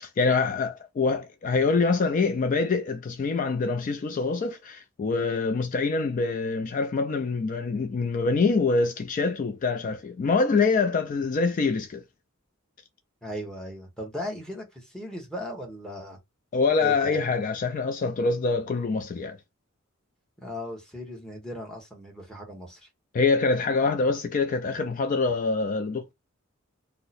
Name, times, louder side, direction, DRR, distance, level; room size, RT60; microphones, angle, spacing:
voice 1, 0.0-12.0 16.5-19.4 23.1-26.1, left 4 dB, 40° left, 0.3 m, -25 dB
voice 2, 13.2-16.2 16.8-17.3 20.4-22.9, equal, 5° left, 0.9 m, -37 dB
2.7 x 2.0 x 4.0 m
head